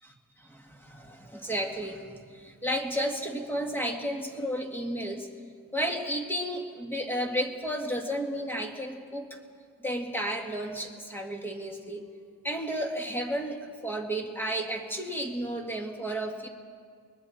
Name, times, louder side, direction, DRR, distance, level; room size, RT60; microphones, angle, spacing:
voice 1, 0.4-5.3 5.7-9.4 9.8-12.0 12.4-16.5, equal, 5° left, 2 dB, 1.9 m, -32 dB
29.0 x 21.5 x 4.2 m, 2.1 s
wide cardioid pair, 160°, 37 cm